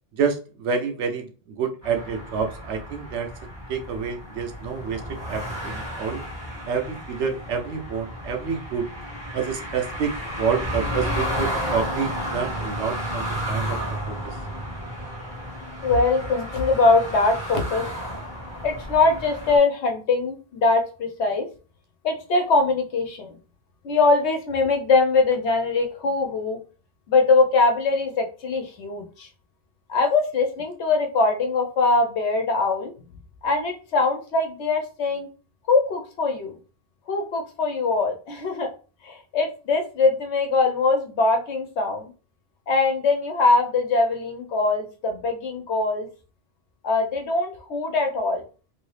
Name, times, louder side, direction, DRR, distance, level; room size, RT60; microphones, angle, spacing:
voice 1, 0.1-3.3 3.7-5.0 5.3-6.2 6.7-8.9 9.3-13.8 14.1-14.4, right 6 dB, 90° right, 6 dB, 0.9 m, -28 dB
sound 1, 1.8-19.6, equal, 15° right, 1.7 m, -32 dB
voice 2, 15.8-17.9 18.6-21.5 22.0-23.4 23.8-26.6 27.1-29.3 29.9-32.9 33.4-35.3 35.7-36.6 37.1-38.7 39.0-42.1 42.7-46.1 46.8-48.4, left 3 dB, 80° left, 4 dB, 1.0 m, -22 dB
3.0 x 2.7 x 3.2 m, 0.36 s
omnidirectional pair, 1.2 m